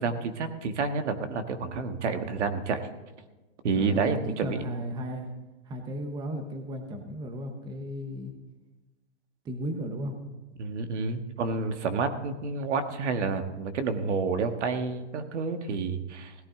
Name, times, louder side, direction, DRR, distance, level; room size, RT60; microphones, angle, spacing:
voice 1, 0.0-2.8 3.6-4.6 10.6-16.3, right 4 dB, 75° right, 7 dB, 1.7 m, -29 dB
voice 2, 3.7-5.3 5.7-8.3 9.4-10.2, equal, 10° right, 5 dB, 1.0 m, -34 dB
17.5 x 12.0 x 3.8 m, 1.2 s
supercardioid pair, 160°, 36 cm